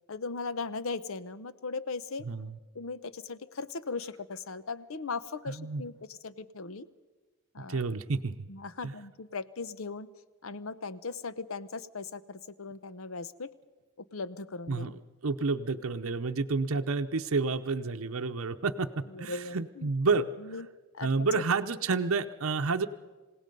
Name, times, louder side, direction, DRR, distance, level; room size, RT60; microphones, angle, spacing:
voice 1, 0.1-2.3 2.7-6.9 7.5-7.8 8.5-10.1 10.4-13.5 14.0-15.0 19.1-19.9 20.4-20.7 20.9-21.4, left 4 dB, 70° left, 14 dB, 0.8 m, -38 dB
voice 2, 2.3-2.6 5.5-5.8 7.7-8.5 8.8-8.9 14.7-15.0 15.2-20.3 21.0-22.9, right 4 dB, 70° right, 7 dB, 0.8 m, -30 dB
27.5 x 17.5 x 5.4 m, 1.3 s
head